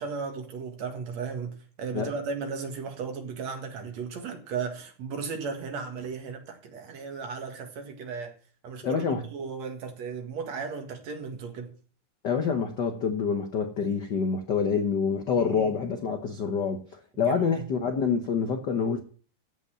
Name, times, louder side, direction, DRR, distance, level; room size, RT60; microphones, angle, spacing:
voice 1, 0.0-8.3 8.6-9.1 9.3-11.7 15.4-15.8 17.3-17.6, right 5 dB, 60° right, 2.9 m, -35 dB
voice 2, 8.8-9.3 12.2-19.0, left 6 dB, 70° left, 1.0 m, -27 dB
15.0 x 5.5 x 7.5 m
omnidirectional pair, 3.6 m